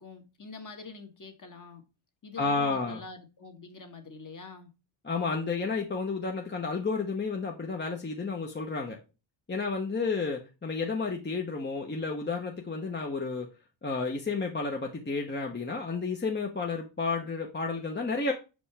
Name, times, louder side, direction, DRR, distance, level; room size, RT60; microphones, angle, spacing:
voice 1, 0.0-1.8 2.2-4.7, left 4 dB, 40° left, 1.6 m, -45 dB
voice 2, 2.4-3.0 5.0-9.0 9.5-13.5 13.8-18.3, left 4 dB, 20° left, 1.0 m, -31 dB
6.2 x 5.2 x 3.4 m
wide cardioid pair, 115°, 48 cm